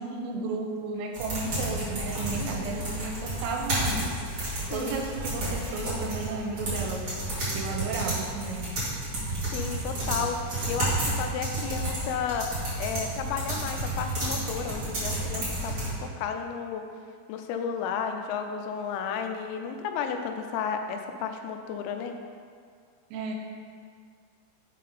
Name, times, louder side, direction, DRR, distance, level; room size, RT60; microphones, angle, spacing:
voice 1, 0.0-4.4 4.7-7.1 7.5-8.7 23.1-23.4, right 4 dB, 85° right, 2 dB, 3.3 m, -33 dB
sound 1, 1.1-15.9, right 1 dB, 65° right, 1.2 m, -31 dB
voice 2, 2.4-2.8 4.7-5.0 9.5-12.5 12.8-16.8 17.3-22.2, left 6 dB, 90° left, 5 dB, 3.2 m, -33 dB
7.4 x 3.7 x 5.6 m, 2.1 s
omnidirectional pair, 5.8 m